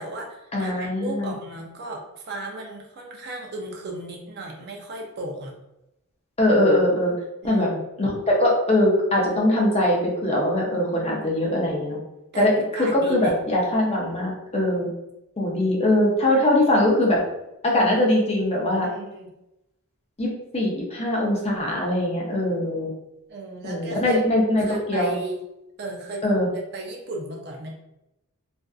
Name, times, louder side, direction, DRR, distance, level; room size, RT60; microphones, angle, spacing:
voice 1, 0.0-5.5 7.4-7.8 12.3-12.5 12.7-13.4 18.8-19.4 23.3-24.2 24.6-25.4 25.8-26.3 26.7-27.7, right 2 dB, 50° right, 1 dB, 0.4 m, -35 dB
voice 2, 0.5-1.3 6.4-7.1 7.4-7.7 8.0-12.0 12.4-14.9 15.4-17.2 17.6-18.9 20.2-22.9 23.6-25.1 26.2-26.5, left 1 dB, 30° left, -3 dB, 0.6 m, -21 dB
2.5 x 2.4 x 2.3 m, 0.89 s
head